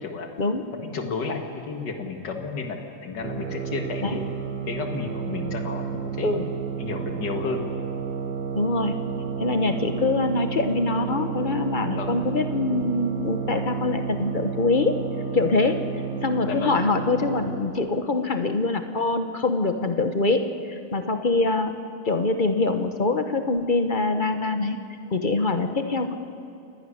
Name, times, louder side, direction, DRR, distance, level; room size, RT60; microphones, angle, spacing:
voice 1, 0.0-0.3 0.8-4.3 4.7-6.5 6.8-7.6 11.8-12.2 16.4-16.8, left 4 dB, 70° left, 4 dB, 2.4 m, -32 dB
sound 1, 3.2-17.8, right 7 dB, 65° right, 1.8 m, -31 dB
voice 2, 8.5-8.9 9.4-14.9 15.3-15.8 16.2-21.7 22.0-24.8 25.1-26.1, left 3 dB, 35° left, 7 dB, 0.8 m, -24 dB
28.5 x 11.5 x 10.0 m, 2.6 s
omnidirectional pair, 1.9 m